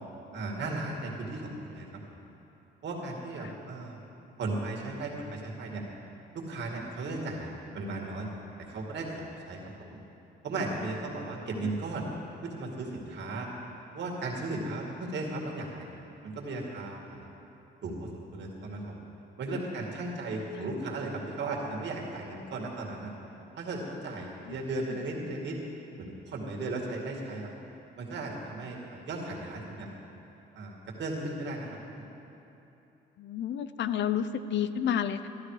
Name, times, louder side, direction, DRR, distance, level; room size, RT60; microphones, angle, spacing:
voice 1, 0.3-1.9 2.8-4.0 4.4-5.8 6.3-7.5 7.7-8.3 8.7-10.0 10.4-12.1 12.4-13.5 13.9-15.9 16.2-17.3 17.8-19.0 19.4-23.1 23.6-25.6 26.0-27.5 28.0-29.9 30.5-31.7 32.0-32.1, right 2 dB, 65° right, -1 dB, 2.3 m, -36 dB
voice 2, 33.2-35.3, left 9 dB, 65° left, 12 dB, 0.5 m, -31 dB
13.0 x 12.5 x 4.9 m, 2.9 s
cardioid pair, 90°, 20 cm